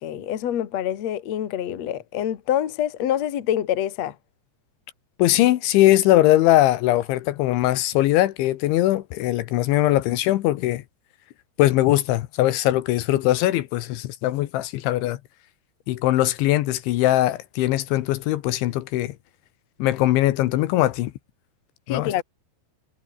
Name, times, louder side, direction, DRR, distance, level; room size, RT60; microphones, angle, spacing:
voice 1, 0.0-4.1 21.9-22.2, left 11 dB, 50° left, 2.1 m, -26 dB
voice 2, 5.2-10.8 11.6-15.2 15.9-19.1 19.8-21.1 21.9-22.2, left 15 dB, 75° left, 3.3 m, -21 dB
omnidirectional pair, 5.7 m